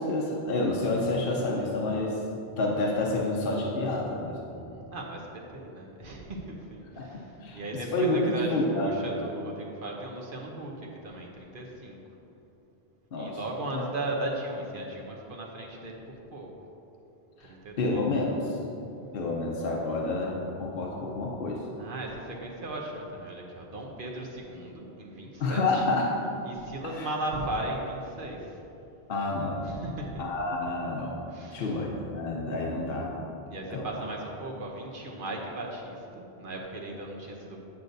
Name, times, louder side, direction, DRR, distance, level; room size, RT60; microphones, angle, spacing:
voice 1, 0.0-2.2 2.6-4.4 7.0-7.1 7.4-7.6 7.9-8.9 13.1-13.4 13.7-13.9 17.4-17.5 17.8-18.6 19.1-21.6 25.4-26.1 26.9-27.1 29.1-29.7 30.2-31.2 31.5-33.1 33.7-33.9, left 2 dB, 65° left, -2 dB, 0.9 m, -29 dB
voice 2, 4.7-12.0 13.1-16.0 16.3-16.5 17.4-18.1 21.8-25.8 26.4-28.6 29.6-30.3 31.3-31.8 33.5-37.6, right 1 dB, 60° right, -1 dB, 0.9 m, -37 dB
8.1 x 7.7 x 2.6 m, 2.9 s
omnidirectional pair, 1.0 m